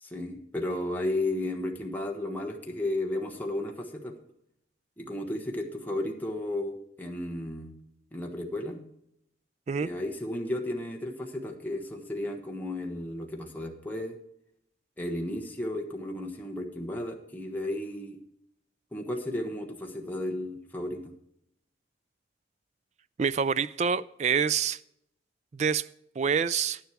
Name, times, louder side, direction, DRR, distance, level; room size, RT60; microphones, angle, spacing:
voice 1, 0.0-4.1 5.0-7.7 8.1-8.8 9.8-14.1 15.0-18.2 18.9-21.1, left 1 dB, 10° left, 1 dB, 1.3 m, -33 dB
voice 2, 23.2-24.8 25.5-25.9 26.2-26.8, right 6 dB, 40° right, 17 dB, 0.3 m, -26 dB
11.0 x 10.5 x 4.6 m, 0.76 s
head